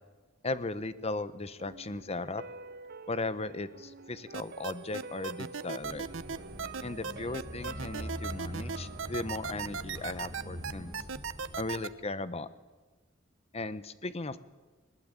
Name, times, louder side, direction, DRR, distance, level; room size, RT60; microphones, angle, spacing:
voice 1, 0.4-2.4 3.1-6.1 6.8-10.9 11.6-12.5 13.5-14.4, left 2 dB, 30° left, 14 dB, 0.9 m, -37 dB
sound 1, 1.6-10.6 10.9-11.0, right 4 dB, 50° right, 0.7 m, -49 dB
sound 2, 4.3-11.9, right 5 dB, 85° right, 0.9 m, -36 dB
sound 3, 5.8-11.6, equal, 20° right, 7.5 m, -43 dB
19.5 x 19.5 x 9.1 m, 1.3 s
head